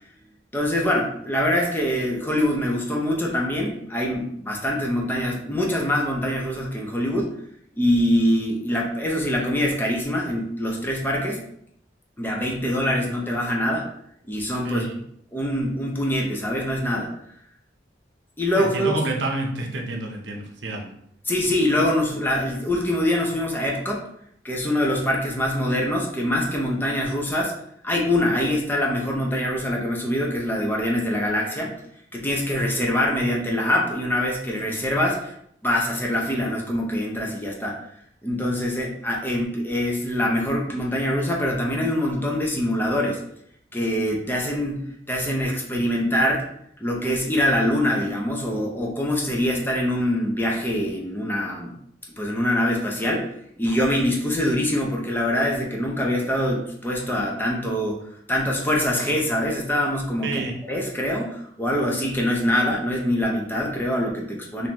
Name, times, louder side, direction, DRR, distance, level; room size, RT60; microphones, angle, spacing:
voice 1, 0.5-7.3 7.8-11.4 12.2-13.9 14.3-14.9 15.3-17.1 18.4-18.9 21.3-24.1 24.4-27.5 27.8-31.7 32.1-35.3 35.6-37.8 38.2-43.2 43.7-46.4 46.8-51.7 52.2-53.3 53.6-64.7, left 1 dB, 10° left, -1 dB, 0.6 m, -24 dB
voice 2, 18.6-20.9 60.2-60.5, right 2 dB, 75° right, 1 dB, 0.7 m, -28 dB
3.8 x 2.6 x 2.9 m, 0.71 s
head